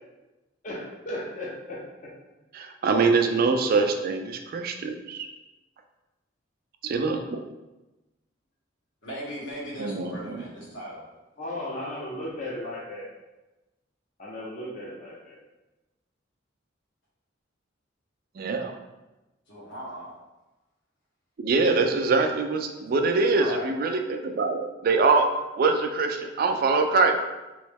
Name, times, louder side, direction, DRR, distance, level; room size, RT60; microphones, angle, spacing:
voice 1, 0.6-1.9 11.4-13.1 14.2-15.4, left 1 dB, 40° left, -5 dB, 0.6 m, -35 dB
voice 2, 2.5-5.3 6.8-7.4 9.8-10.4 18.4-18.7 21.4-25.3 25.6-27.1, right 4 dB, 50° right, 5 dB, 0.3 m, -24 dB
voice 3, 9.0-11.0 19.5-20.1 23.3-23.7, equal, 65° left, -7 dB, 1.4 m, -37 dB
3.1 x 3.0 x 3.4 m, 1.1 s
head